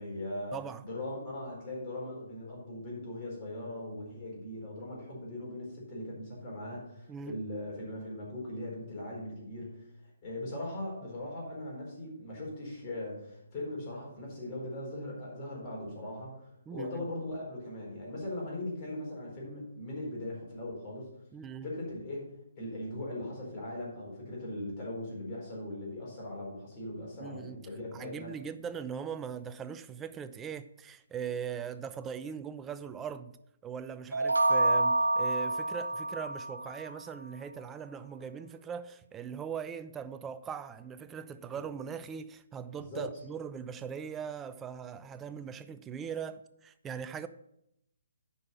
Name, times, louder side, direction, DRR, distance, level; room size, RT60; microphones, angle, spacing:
voice 1, 0.0-9.8 10.2-21.1 21.6-22.2 22.6-28.3 41.5-41.6 42.9-43.1, left 1 dB, 30° left, 4.4 m, -39 dB
voice 2, 0.5-0.8 7.1-7.4 16.7-17.1 21.3-21.7 27.2-27.6 27.9-33.4 33.6-47.3, right 7 dB, 15° right, 0.5 m, -40 dB
sound 1, 34.1-36.9, right 2 dB, 85° right, 0.8 m, -28 dB
9.3 x 5.5 x 5.8 m
figure-of-eight pair, 140°, 0 cm